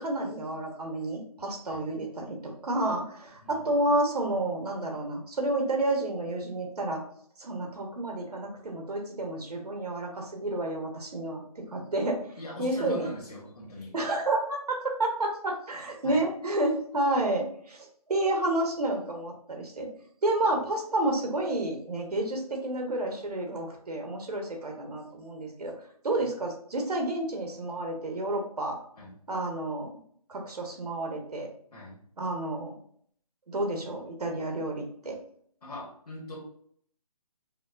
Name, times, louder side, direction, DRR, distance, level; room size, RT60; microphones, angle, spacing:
voice 1, 0.0-7.0 7.4-12.2 12.6-13.1 13.9-19.9 20.2-25.7 26.0-28.8 29.3-29.9 30.3-31.5 32.2-32.8 33.5-35.2, right 2 dB, 85° right, 2 dB, 1.1 m, -30 dB
voice 2, 12.4-13.9 16.0-16.2 26.2-26.3 29.0-29.1 31.7-32.0 35.6-36.4, left 1 dB, 85° left, -3 dB, 1.4 m, -41 dB
4.8 x 2.4 x 2.5 m, 0.63 s
hypercardioid pair, 180°, 19 cm